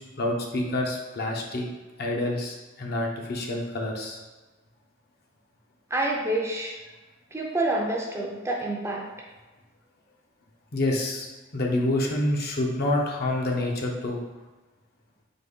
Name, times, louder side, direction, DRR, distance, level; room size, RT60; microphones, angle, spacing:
voice 1, 0.0-1.6 2.0-4.2 10.7-11.3 11.5-14.2, left 1 dB, 50° left, 0 dB, 0.7 m, -27 dB
voice 2, 5.9-6.8 7.3-9.1, right 2 dB, 15° right, -1 dB, 0.5 m, -27 dB
4.0 x 3.0 x 3.6 m, 1.2 s
head